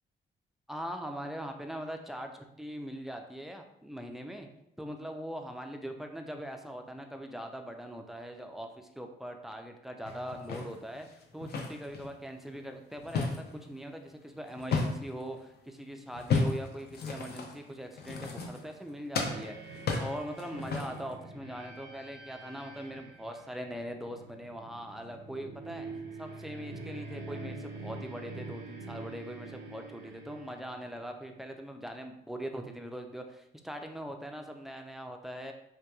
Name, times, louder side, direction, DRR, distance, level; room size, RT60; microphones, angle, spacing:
voice 1, 0.7-4.5 4.8-19.7 20.0-25.9 26.2-35.5, equal, ahead, 4 dB, 0.3 m, -41 dB
sound 1, 10.1-12.1 12.6-15.3 16.1-18.9 19.1-21.1, left 4 dB, 55° left, 0.5 m, -34 dB
sound 2, 19.2-31.3, right 3 dB, 75° right, 0.5 m, -45 dB
2.8 x 2.2 x 2.2 m, 0.82 s
supercardioid pair, 60°, 20 cm